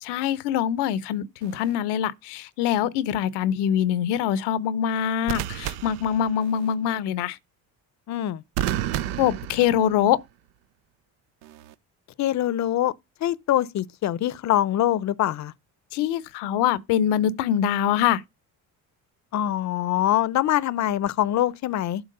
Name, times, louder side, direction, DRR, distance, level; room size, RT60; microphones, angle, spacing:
voice 1, 0.0-7.4 9.2-10.2 15.9-18.2, left 10 dB, 85° left, 0.8 m, -24 dB
sound 1, 1.4-1.7 5.3-6.7 8.6-10.2 11.4-11.7, right 12 dB, 85° right, 0.7 m, -31 dB
voice 2, 8.1-8.4 12.2-12.9 13.2-15.5 19.3-22.0, left 12 dB, 45° left, 0.6 m, -24 dB
8.0 x 4.5 x 6.6 m
supercardioid pair, 85°, 39 cm